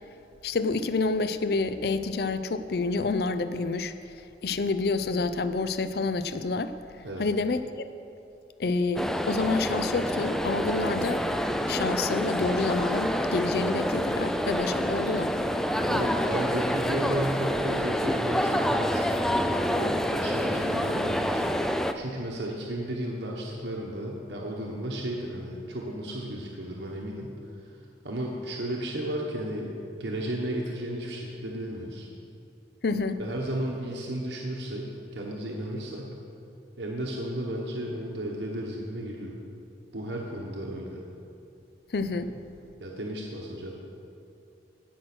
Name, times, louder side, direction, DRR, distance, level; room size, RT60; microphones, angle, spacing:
voice 1, 0.4-7.9 8.6-11.2 11.7-15.3 32.8-33.2 41.9-42.3, left 3 dB, 60° left, 12 dB, 0.5 m, -28 dB
sound 1, 9.0-21.9, equal, 5° left, 0.3 m, -27 dB
voice 2, 15.9-21.4 21.7-27.3 27.6-27.7 28.0-29.7 30.0-32.1 33.2-36.1 36.8-39.4 39.9-41.0 42.8-43.8, right 1 dB, 75° right, -2 dB, 1.3 m, -34 dB
16.5 x 6.2 x 6.1 m, 2.7 s
head